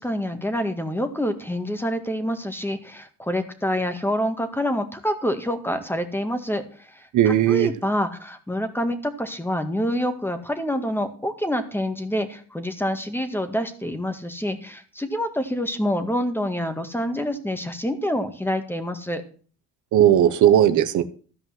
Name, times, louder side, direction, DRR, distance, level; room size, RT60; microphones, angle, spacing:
voice 1, 0.0-19.2, equal, 5° left, 1.8 m, -27 dB
voice 2, 7.1-7.7 19.9-21.0, right 11 dB, 75° right, 1.0 m, -17 dB
13.5 x 5.3 x 7.7 m
cardioid pair, 90°, 30 cm